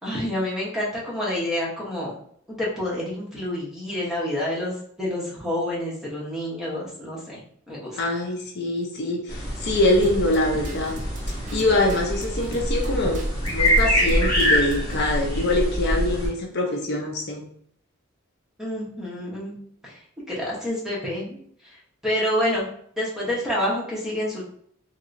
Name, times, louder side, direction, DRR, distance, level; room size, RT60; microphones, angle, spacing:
voice 1, 0.0-2.2 2.5-7.4 7.7-8.0 18.6-19.5 19.8-20.0 20.3-21.4 22.0-22.6 23.0-24.4, left 1 dB, ahead, -6 dB, 0.9 m, -28 dB
voice 2, 8.0-11.0 11.3-13.2 13.5-17.5, left 1 dB, 55° left, 0 dB, 0.5 m, -24 dB
sound 1, 9.3-16.3, equal, 20° left, 1.2 m, -25 dB
sound 2, 10.0-15.0, right 2 dB, 35° right, 0.3 m, -39 dB
2.9 x 2.9 x 2.5 m, 0.63 s
head